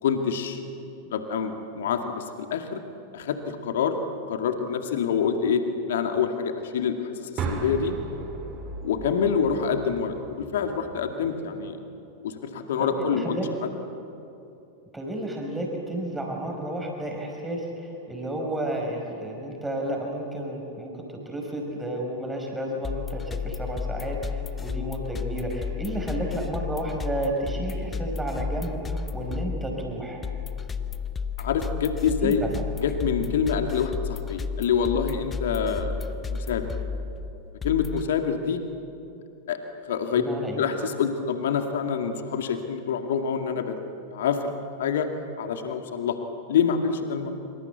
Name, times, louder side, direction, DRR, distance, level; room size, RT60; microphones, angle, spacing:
voice 1, 0.0-0.6 1.0-2.8 3.1-4.0 4.3-5.6 5.9-8.0 8.8-11.8 12.2-13.4 31.4-32.4 32.8-36.0 36.3-36.7 37.6-38.6 39.5-39.6 39.8-40.2 40.6-43.8 44.1-44.5 44.8-45.1 45.4-46.2 46.5-47.3, left 7 dB, 60° left, 6 dB, 2.1 m, -26 dB
sound 1, 7.4-11.3, right 4 dB, 30° right, 3.3 m, -36 dB
voice 2, 12.8-13.5 14.9-20.9 21.3-30.2 32.2-32.5 40.1-40.6, right 1 dB, 5° right, 1 dB, 5.4 m, -32 dB
sound 2, 22.8-38.1, left 5 dB, 20° left, 1.0 m, -32 dB
26.0 x 25.5 x 8.3 m, 2.8 s
figure-of-eight pair, 90°, 0 cm